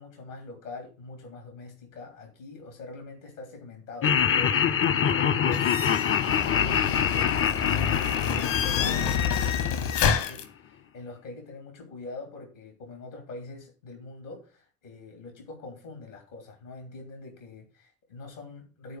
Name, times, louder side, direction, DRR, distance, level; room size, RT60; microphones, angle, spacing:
voice 1, 0.0-19.0, left 3 dB, 80° left, 3.1 m, -43 dB
Laughter, 4.0-10.2, left 8 dB, 35° left, 0.7 m, -25 dB
sound 1, 5.5-10.4, left 8 dB, 55° left, 1.4 m, -28 dB
11.0 x 4.7 x 6.6 m
figure-of-eight pair, 45°, 38 cm